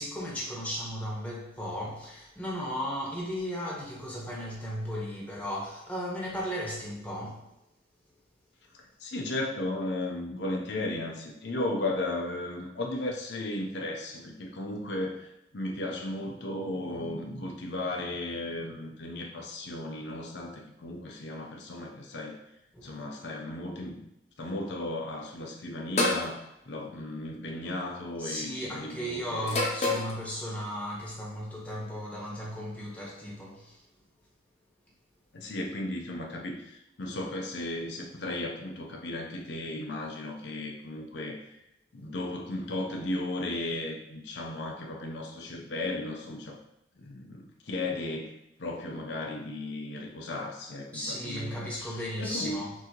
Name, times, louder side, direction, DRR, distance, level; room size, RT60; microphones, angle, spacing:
voice 1, 0.0-7.5 22.7-23.0 28.2-33.8 50.9-52.7, equal, 10° left, -5 dB, 0.9 m, -35 dB
voice 2, 9.0-15.3 15.5-22.4 22.8-24.0 24.4-29.6 35.3-41.4 41.9-46.6 47.0-48.3 48.6-51.9 52.2-52.6, left 2 dB, 75° left, 0 dB, 0.6 m, -35 dB
sound 1, 26.0-26.3 27.5-27.8 29.5-30.1, left 2 dB, 35° left, 0.7 m, -27 dB
6.0 x 2.8 x 2.9 m, 0.86 s
head